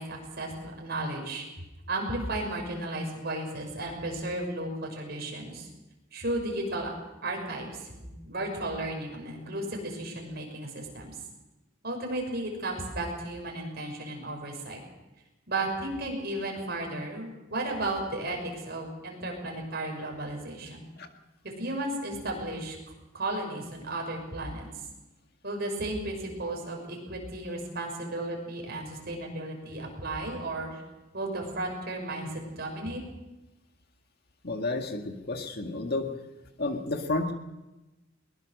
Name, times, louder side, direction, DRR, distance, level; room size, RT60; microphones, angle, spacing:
voice 1, 0.0-1.5 1.9-5.7 6.1-6.9 7.2-11.1 11.8-14.8 15.5-20.9 21.4-22.8 23.1-24.7 25.4-30.8 31.1-33.0, right 2 dB, 55° right, 1 dB, 6.2 m, -34 dB
voice 2, 34.4-36.1 36.6-37.3, left 2 dB, 55° left, 5 dB, 2.0 m, -31 dB
22.0 x 21.0 x 6.7 m, 1.0 s
head